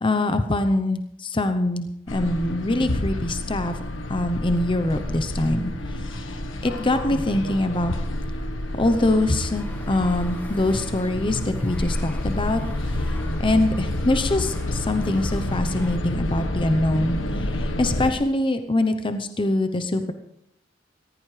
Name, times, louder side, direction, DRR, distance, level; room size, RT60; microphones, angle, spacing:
voice 1, 0.0-3.8 4.1-8.0 8.7-20.1, left 2 dB, 25° left, 8 dB, 0.8 m, -24 dB
sound 1, 2.1-18.1, left 1 dB, 75° left, 1.3 m, -29 dB
sound 2, 8.8-16.0, left 1 dB, 10° left, 1.4 m, -45 dB
19.0 x 15.5 x 3.3 m, 0.74 s
head